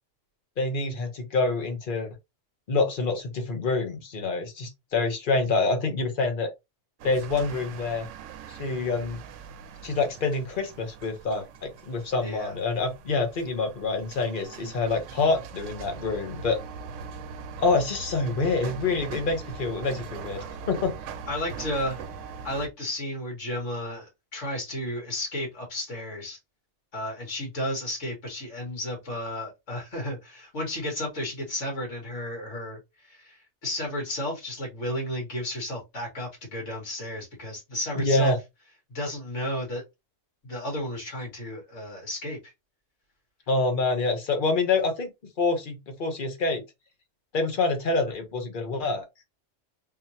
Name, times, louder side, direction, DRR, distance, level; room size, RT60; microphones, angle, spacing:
voice 1, 0.6-2.1 2.7-6.5 7.0-8.1 8.5-9.2 9.8-16.6 17.6-20.9 37.9-38.4 43.5-45.1 45.4-46.6 47.3-49.0, left 3 dB, 45° left, 1.1 m, -26 dB
sound 1, 7.0-22.7, right 5 dB, 80° right, 0.9 m, -41 dB
voice 2, 12.2-12.5 21.3-22.0 22.4-26.4 26.9-38.4 38.9-39.8 40.4-42.5, left 1 dB, 70° left, 2.2 m, -33 dB
3.7 x 3.0 x 2.7 m
omnidirectional pair, 1.3 m